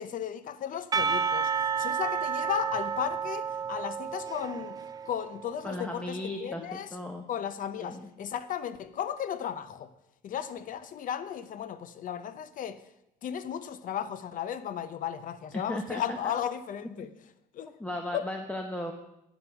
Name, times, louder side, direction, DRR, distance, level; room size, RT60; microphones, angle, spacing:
voice 1, 0.0-4.8 5.1-7.0 7.3-9.9 10.2-12.8 13.2-17.1 17.5-17.7 18.1-18.3, left 9 dB, 50° left, 0.7 m, -35 dB
Percussion / Church bell, 0.9-5.9, right 6 dB, 20° right, 0.4 m, -31 dB
voice 2, 5.6-7.2 7.8-8.1 15.5-16.0 17.8-18.9, left 1 dB, 5° left, 0.8 m, -36 dB
9.9 x 6.1 x 5.7 m
cardioid pair, 110°, 17 cm